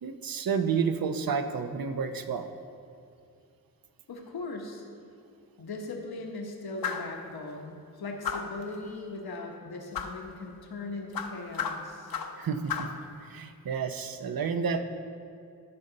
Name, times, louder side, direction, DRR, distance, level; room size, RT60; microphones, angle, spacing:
voice 1, 0.0-2.5 12.4-12.9 13.2-14.8, right 6 dB, 70° right, 8 dB, 0.7 m, -30 dB
voice 2, 4.1-4.8 5.6-12.1, left 2 dB, 90° left, 1 dB, 1.1 m, -39 dB
sound 1, 6.8-7.1 8.2-8.6 9.9-10.2 11.1-12.4 12.7-13.0, left 7 dB, 70° left, 0.7 m, -33 dB
15.0 x 5.4 x 3.9 m, 2.4 s
cardioid pair, 55°, 36 cm